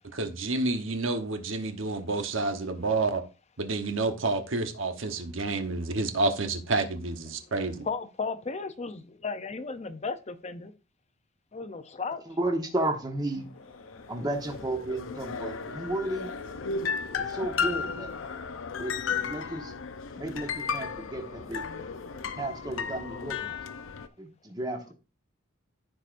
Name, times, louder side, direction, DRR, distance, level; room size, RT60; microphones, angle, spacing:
voice 1, 0.1-3.2 3.6-7.9, right 3 dB, 80° right, 1.0 m, -29 dB
voice 2, 2.6-3.0 5.1-5.5 7.3-7.5 7.8-10.7 11.5-12.4 13.9-14.1 20.1-20.2 21.2-21.6 22.1-22.4 23.5-23.6, left 4 dB, 35° left, 0.6 m, -37 dB
voice 3, 12.3-13.5 14.1-16.3 17.1-18.1 18.8-19.7 20.2-21.7 22.4-23.5 24.2-24.9, right 1 dB, 20° right, 1.3 m, -33 dB
sound 1, 13.6-24.1, left 5 dB, 85° left, 0.6 m, -34 dB
14.0 x 4.8 x 2.5 m
head